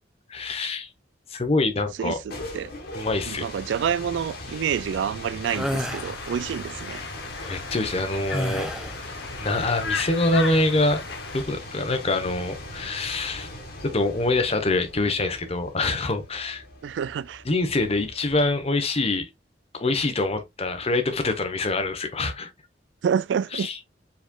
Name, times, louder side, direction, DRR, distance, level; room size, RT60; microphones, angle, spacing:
voice 1, 0.3-0.9 1.3-2.2 2.9-3.5 7.4-8.7 9.4-11.0 11.3-13.5 13.8-16.6 17.4-19.3 19.7-22.5 23.5-23.8, left 2 dB, 35° left, 1.0 m, -25 dB
sound 1, 2.0-18.7, left 1 dB, 60° left, 1.5 m, -40 dB
voice 2, 2.0-2.7 3.2-7.0 16.8-17.4 23.0-23.7, right 8 dB, 80° right, 0.3 m, -28 dB
Conversation, 5.4-11.4, left 5 dB, 80° left, 0.9 m, -36 dB
sound 2, 5.5-6.1 8.3-9.0, equal, 5° right, 0.4 m, -29 dB
4.9 x 4.2 x 2.3 m
head